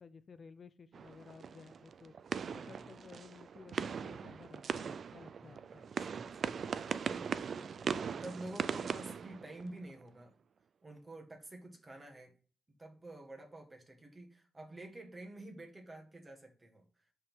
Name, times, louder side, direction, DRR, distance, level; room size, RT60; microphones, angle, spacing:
voice 1, 0.0-2.1 2.5-5.8, left 5 dB, 50° left, 13 dB, 0.4 m, -55 dB
sound 1, 0.9-10.0, right 6 dB, 60° right, 0.3 m, -40 dB
voice 2, 2.5-2.9 5.4-10.3 10.8-12.3 12.8-17.1, right 1 dB, 25° right, 2 dB, 1.6 m, -50 dB
5.5 x 3.6 x 5.8 m, 0.41 s
cardioid pair, 85°, 0 cm